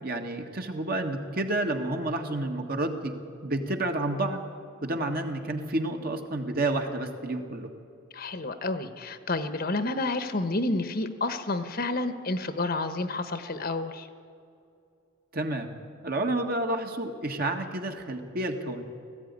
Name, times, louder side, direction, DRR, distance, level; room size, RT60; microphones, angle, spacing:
voice 1, 0.0-3.1 3.4-4.4 4.8-7.7 15.3-15.8 16.0-18.8, right 2 dB, 50° right, 4 dB, 1.7 m, -30 dB
voice 2, 8.1-14.1, left 2 dB, 45° left, 10 dB, 1.1 m, -30 dB
18.5 x 15.0 x 9.6 m, 2.5 s
head